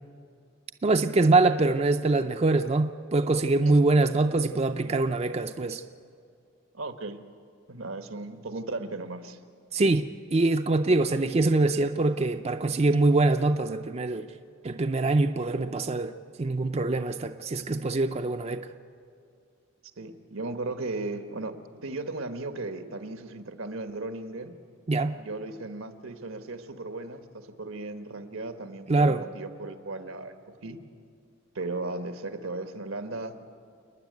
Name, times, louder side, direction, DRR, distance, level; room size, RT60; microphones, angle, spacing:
voice 1, 0.8-5.8 9.7-14.3 14.6-16.1 16.4-18.7 24.9-25.1 28.9-29.3, right 2 dB, 30° right, 0.5 m, -24 dB
voice 2, 6.7-7.2 7.7-9.4 20.0-21.6 21.8-24.5 25.2-30.3 30.6-30.8 31.5-33.4, right 2 dB, 85° right, 1.3 m, -36 dB
28.5 x 10.0 x 9.4 m
head